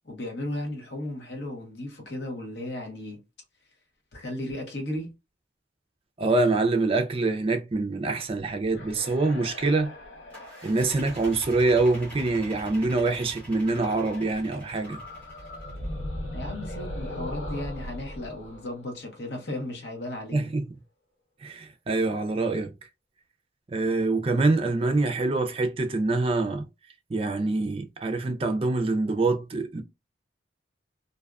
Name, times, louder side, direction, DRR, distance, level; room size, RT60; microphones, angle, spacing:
voice 1, 0.0-3.2 4.1-5.1 16.3-20.5, left 1 dB, 65° left, 0.9 m, -35 dB
voice 2, 6.2-9.9 10.6-15.0 20.3-20.6 21.4-22.7 23.7-26.6 27.1-29.8, right 3 dB, 30° right, 0.4 m, -25 dB
sound 1, 8.7-12.5 13.6-14.4 14.7-19.6, left 1 dB, 90° left, 0.8 m, -39 dB
sound 2, 10.3-15.8, equal, 10° left, 1.0 m, -45 dB
2.6 x 2.3 x 2.3 m
head